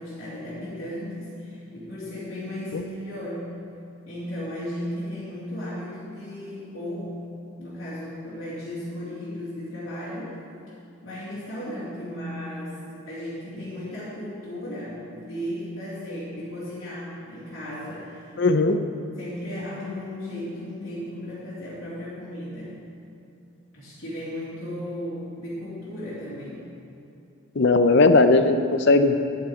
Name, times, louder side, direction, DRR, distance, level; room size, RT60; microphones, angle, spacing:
voice 1, 0.0-3.6 4.1-7.2 7.6-10.3 11.0-12.8 13.1-18.4 19.1-22.7 23.7-26.7, left 1 dB, 75° left, -12 dB, 2.8 m, -35 dB
voice 2, 18.4-18.8 27.6-29.2, left 3 dB, 55° left, 9 dB, 0.5 m, -18 dB
10.5 x 7.8 x 5.0 m, 2.6 s
head